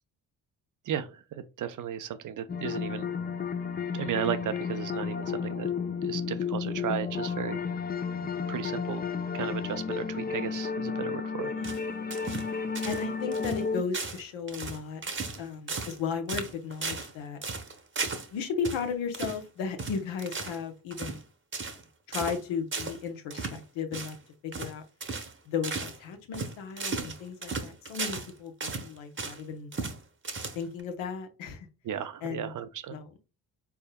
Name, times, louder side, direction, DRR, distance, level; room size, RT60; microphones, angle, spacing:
voice 1, 0.9-3.1 3.9-5.7 6.0-7.6 8.5-9.0 9.3-11.5 31.8-33.0, right 9 dB, 40° right, 0.5 m, -34 dB
sound 1, 2.5-13.8, left 6 dB, 20° left, 0.5 m, -32 dB
voice 2, 11.4-11.8 12.8-15.1 15.4-17.4 18.3-21.2 22.1-24.2 24.4-24.8 25.5-29.7 30.5-31.7 32.2-32.5 32.9-33.1, left 6 dB, 70° left, 0.9 m, -35 dB
sound 2, 11.6-12.5 12.8-13.1 13.3-13.6 13.9-14.2 14.5-15.4 15.7-16.0 16.3-17.1 17.4-18.3 18.6-18.8 19.1-19.4 19.8-20.6 20.9-21.2 21.5-21.8 22.1-22.4 22.7-23.0 23.3-23.6 23.9-24.2 24.5-24.7 25.0-25.3 25.6-26.0 26.3-28.3 28.6-29.4 29.7-30.0 30.2-30.8, right 4 dB, 25° right, 0.9 m, -35 dB
4.2 x 3.5 x 2.2 m
hypercardioid pair, 50°, 49 cm